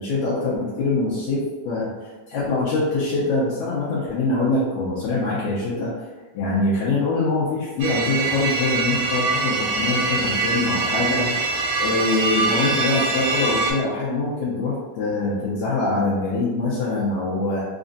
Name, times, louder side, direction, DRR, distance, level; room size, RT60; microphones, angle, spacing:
voice 1, 0.0-5.9 6.3-11.4 11.8-17.6, left 3 dB, 75° left, -8 dB, 1.9 m, -24 dB
sound 1, 7.8-13.7, right 3 dB, 70° right, 1.6 m, -23 dB
5.0 x 2.4 x 2.6 m, 1.3 s
omnidirectional pair, 3.5 m